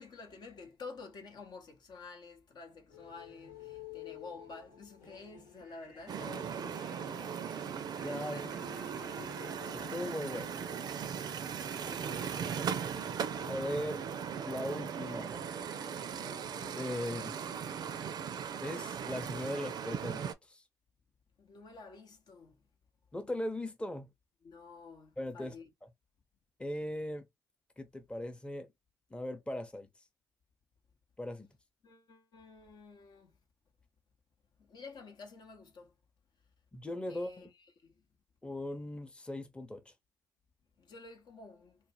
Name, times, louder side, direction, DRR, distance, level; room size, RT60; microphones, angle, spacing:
voice 1, 0.0-7.5 8.0-9.4 11.8-13.1 13.5-13.7 16.1-16.4 21.4-22.5 24.4-25.7 31.8-33.3 34.7-35.9 37.1-37.5 37.8-37.9 40.8-41.8, left 4 dB, 55° left, 0.7 m, -51 dB
sound 1, 2.9-18.8, left 5 dB, 85° left, 1.3 m, -53 dB
sound 2, 6.1-20.3, right 7 dB, 50° right, 0.4 m, -38 dB
voice 2, 8.0-8.5 9.7-10.6 13.5-14.0 14.4-15.4 16.8-17.3 18.6-20.6 23.1-24.1 25.2-25.5 26.6-27.3 27.8-28.7 29.1-29.9 31.2-31.5 36.7-37.5 38.4-39.9, left 1 dB, 10° left, 0.7 m, -39 dB
2.5 x 2.1 x 3.1 m
hypercardioid pair, 50°, 9 cm